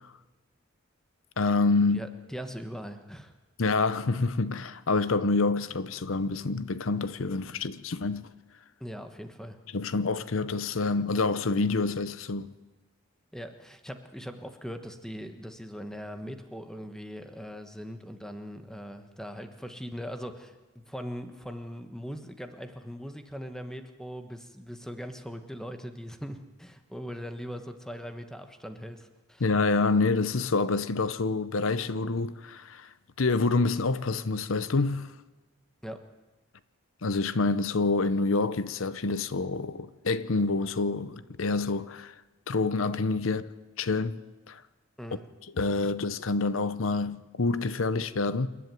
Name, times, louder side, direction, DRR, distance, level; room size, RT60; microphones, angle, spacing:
voice 1, 1.4-2.0 3.6-8.3 9.7-12.5 29.4-32.9 33.2-35.1 37.0-42.1 42.5-43.5 43.8-44.2 44.5-44.6 45.6-48.5, left 3 dB, 75° left, 0.7 m, -27 dB
voice 2, 1.9-3.3 8.8-9.6 13.3-29.5 35.8-36.0 45.0-45.2, equal, 5° left, 1.3 m, -40 dB
28.0 x 11.0 x 9.2 m
head